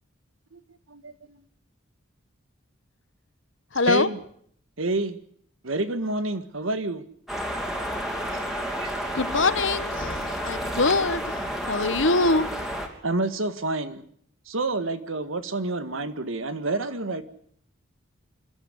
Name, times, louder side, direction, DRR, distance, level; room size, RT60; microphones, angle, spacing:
voice 1, 0.9-1.4 3.8-4.2 4.8-5.2 5.6-7.0 8.3-8.4 8.8-8.9 13.0-14.0 14.5-17.2, right 2 dB, 90° right, 1.8 m, -28 dB
voice 2, 3.7-4.1 9.1-12.5, left 3 dB, 70° left, 1.2 m, -24 dB
Forest atmos, 7.3-12.9, equal, ahead, 3.1 m, -31 dB
27.0 x 12.5 x 9.9 m
head